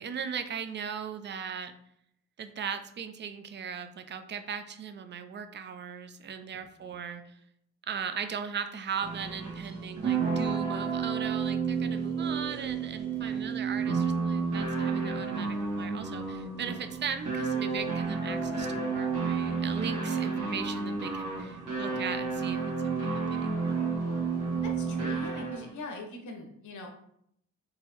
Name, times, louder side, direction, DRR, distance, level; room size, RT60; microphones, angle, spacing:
voice 1, 0.0-1.7 2.4-7.4 7.9-23.8, right 7 dB, 35° right, 10 dB, 0.4 m, -38 dB
voice 2, 6.5-6.9 13.2-13.5 21.9-22.2 24.6-26.9, left 2 dB, 75° left, 2 dB, 1.0 m, -43 dB
sound 1, 9.0-25.8, right 5 dB, 85° right, 1.2 m, -31 dB
3.8 x 2.9 x 2.9 m, 0.72 s
cardioid pair, 100°, 30 cm